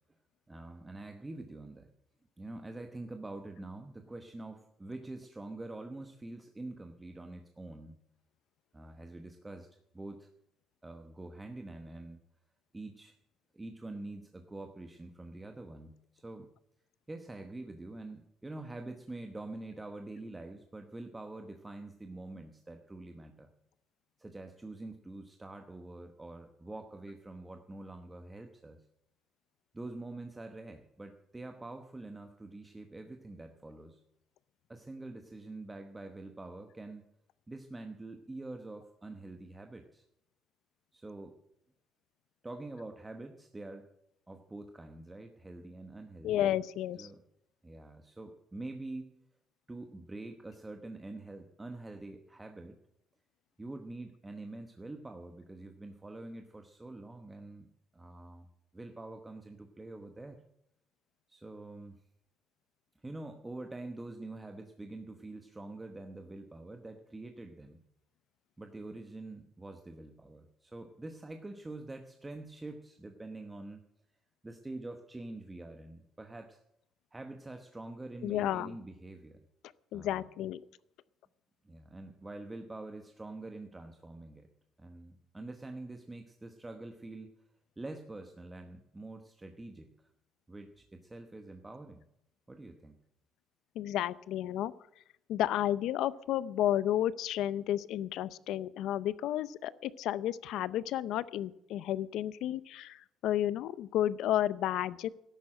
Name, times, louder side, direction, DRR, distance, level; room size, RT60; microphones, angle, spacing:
voice 1, 0.5-1.9 2.4-8.0 8.7-9.7 9.9-10.3 10.8-12.2 12.7-13.2 13.5-16.5 17.1-23.5 24.2-28.8 29.7-34.0 34.7-37.1 37.5-40.0 40.9-41.4 42.4-43.9 44.3-46.5 47.0-47.2 47.6-49.1 49.7-52.8 53.6-57.7 57.9-58.5 58.7-60.4 61.3-62.0 63.0-67.8 68.6-73.9 74.4-76.6 77.1-79.4 79.9-80.3 81.6-84.5 84.8-87.3 87.8-90.1 90.5-92.0 92.5-92.9, right 2 dB, 10° right, 5 dB, 1.0 m, -45 dB
voice 2, 46.2-47.1 78.2-78.8 79.9-80.6 93.8-94.7 95.3-105.1, left 12 dB, 75° left, 18 dB, 0.6 m, -32 dB
13.0 x 11.0 x 7.5 m, 0.80 s
cardioid pair, 155°, 0 cm